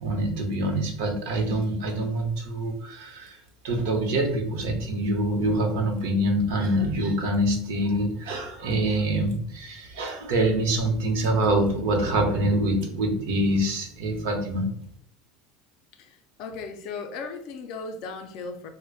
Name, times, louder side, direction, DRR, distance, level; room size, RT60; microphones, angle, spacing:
voice 1, 0.0-3.4 3.6-14.7, right 1 dB, 65° right, 3 dB, 0.8 m, -25 dB
voice 2, 16.0-18.7, left 4 dB, 45° left, 6 dB, 0.4 m, -37 dB
4.8 x 2.1 x 2.3 m, 0.65 s
cardioid pair, 180°, 0 cm